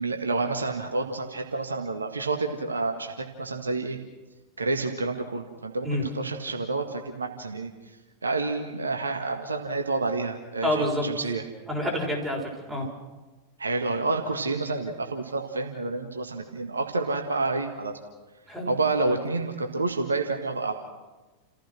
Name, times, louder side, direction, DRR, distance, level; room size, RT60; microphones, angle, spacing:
voice 1, 0.0-4.0 4.6-8.0 8.2-11.4 13.6-18.0 18.7-20.7, right 3 dB, 75° right, 4 dB, 1.8 m, -29 dB
voice 2, 10.6-11.1 11.7-12.9 18.5-18.7 19.0-19.1, left 1 dB, 5° right, -2 dB, 6.6 m, -28 dB
30.0 x 15.5 x 6.1 m, 1.2 s
figure-of-eight pair, 90°, 0 cm